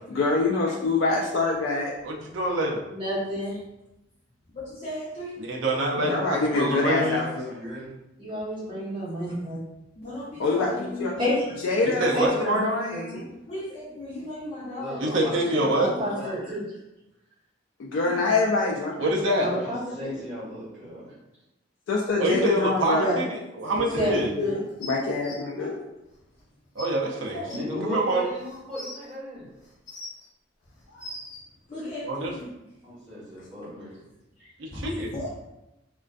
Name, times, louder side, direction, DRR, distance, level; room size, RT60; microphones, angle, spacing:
voice 1, 0.1-1.9 6.1-7.5 10.4-11.1 11.6-12.1 12.4-13.3 17.8-19.6 21.9-23.1 23.9-25.8, left 3 dB, 80° left, -1 dB, 0.3 m, -26 dB
voice 2, 1.0-1.6 4.5-5.5 9.9-11.5 13.5-15.4 18.0-18.2 27.1-27.9 31.7-32.6 34.7-35.3, left 1 dB, 35° left, -8 dB, 0.5 m, -37 dB
voice 3, 2.0-2.8 5.4-7.2 11.8-12.7 15.0-16.2 19.0-19.6 22.2-24.3 26.8-28.3 32.1-32.3 34.6-34.7 35.0-35.1, right 1 dB, 75° right, 0 dB, 0.5 m, -26 dB
voice 4, 2.9-3.6 6.0-6.1 8.2-9.6 11.2-11.5 12.1-13.0 15.5-16.6 19.3-20.1 22.9-23.2 24.0-24.6, left 1 dB, 25° right, -8 dB, 0.9 m, -29 dB
voice 5, 6.6-7.9 14.8-16.6 19.6-21.2 27.5-29.5 32.8-34.0 34.4-34.5, equal, 10° right, -12 dB, 1.3 m, -36 dB
sound 1, 24.8-25.3 26.4-26.5 26.8-26.9 27.5-27.6 28.4-29.0 29.6-30.3 30.7-31.4 32.4-32.5, left 1 dB, 65° left, 0.9 m, -40 dB
2.4 x 2.2 x 2.3 m, 0.91 s
head